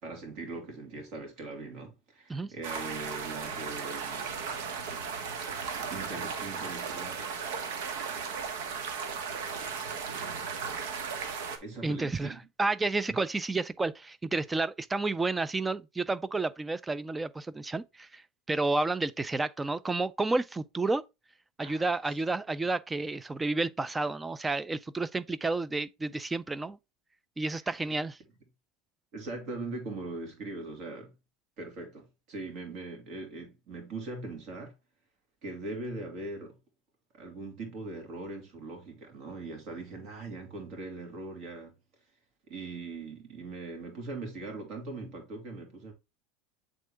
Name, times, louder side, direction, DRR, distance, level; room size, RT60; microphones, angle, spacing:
voice 1, 0.0-4.3 5.4-7.2 11.6-12.4 13.1-13.2 21.6-21.9 29.1-31.1 31.6-34.7 35.4-36.6 37.1-41.8 42.5-45.9, right 3 dB, 55° right, 2.8 m, -41 dB
sound 1, 2.6-11.6, right 6 dB, 80° right, 1.2 m, -36 dB
voice 2, 11.8-21.0 21.6-26.8 27.4-28.2, right 3 dB, 10° right, 0.4 m, -31 dB
7.6 x 3.7 x 3.3 m
supercardioid pair, 135°, 0 cm